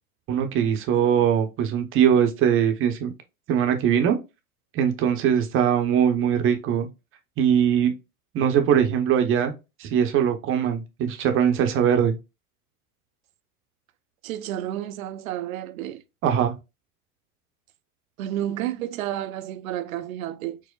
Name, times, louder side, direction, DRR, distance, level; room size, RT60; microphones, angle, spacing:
voice 1, 0.3-3.1 3.5-4.2 4.7-6.9 7.4-7.9 8.3-9.5 9.8-12.1 16.2-16.5, right 8 dB, 30° right, 0.7 m, -21 dB
voice 2, 14.2-16.0 18.2-20.6, right 12 dB, 70° right, 0.5 m, -31 dB
4.5 x 2.1 x 2.2 m
hypercardioid pair, 90°, 44 cm